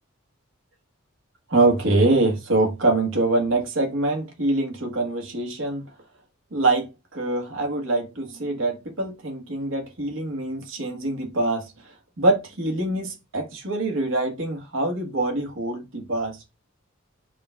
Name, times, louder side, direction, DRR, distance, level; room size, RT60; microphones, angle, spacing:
voice 1, 1.5-5.8 6.5-11.6 12.2-16.4, right 2 dB, 65° right, 1.2 m, -24 dB
5.0 x 2.2 x 3.5 m
head